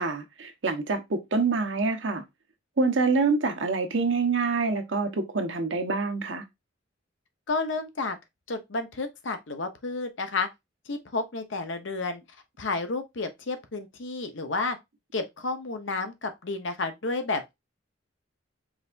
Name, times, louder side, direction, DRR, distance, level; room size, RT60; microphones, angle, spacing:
voice 1, 0.0-2.2 2.8-6.4, right 4 dB, 75° right, 1.0 m, -26 dB
voice 2, 7.5-8.2 8.5-10.5 10.9-12.2 12.6-14.8 15.1-17.5, left 3 dB, 75° left, 0.9 m, -31 dB
4.9 x 3.4 x 2.5 m
head